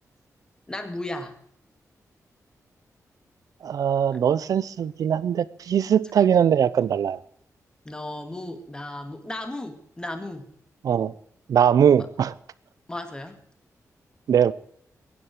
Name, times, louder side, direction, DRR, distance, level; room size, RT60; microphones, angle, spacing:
voice 1, 0.7-1.3 7.9-10.5 12.0-12.1 12.9-13.4, left 1 dB, 15° left, 2.1 m, -35 dB
voice 2, 3.6-7.2 10.8-11.1 11.5-12.3 14.3-14.5, right 8 dB, 75° right, 0.7 m, -21 dB
22.5 x 10.0 x 4.9 m
wide cardioid pair, 155°, 6 cm